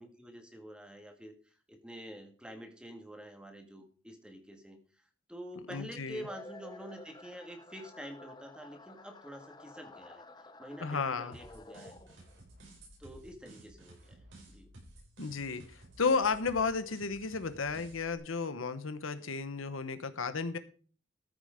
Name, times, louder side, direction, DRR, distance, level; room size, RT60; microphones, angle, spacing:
voice 1, 0.0-12.0 13.0-14.7, equal, 5° right, 5 dB, 1.7 m, -48 dB
voice 2, 5.7-6.2 10.8-11.3 15.2-20.6, left 4 dB, 90° left, 12 dB, 1.1 m, -33 dB
sound 1, 6.2-12.4, left 2 dB, 20° left, 0.7 m, -52 dB
sound 2, 11.3-18.2, right 1 dB, 75° right, 6.0 m, -54 dB
14.0 x 6.8 x 5.1 m, 0.41 s
head